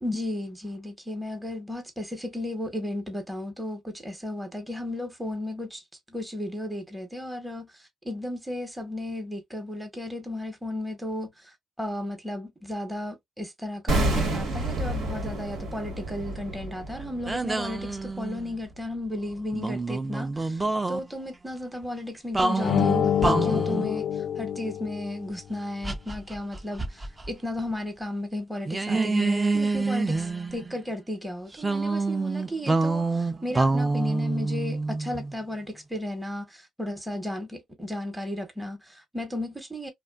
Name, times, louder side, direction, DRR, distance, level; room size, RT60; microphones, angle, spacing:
voice 1, 0.0-24.0 24.4-39.9, left 1 dB, 5° right, 0.8 m, -34 dB
sound 1, 13.9-18.9 19.1-19.3, right 1 dB, 80° right, 1.2 m, -30 dB
sound 2, 17.3-18.6 19.5-21.0 22.3-23.9 25.8-27.3 27.6-27.7 28.7-30.8 31.6-35.3, right 3 dB, 20° right, 0.4 m, -27 dB
sound 3, 22.6-25.3, left 9 dB, 70° left, 0.3 m, -26 dB
2.5 x 2.1 x 2.2 m
cardioid pair, 90°, 0 cm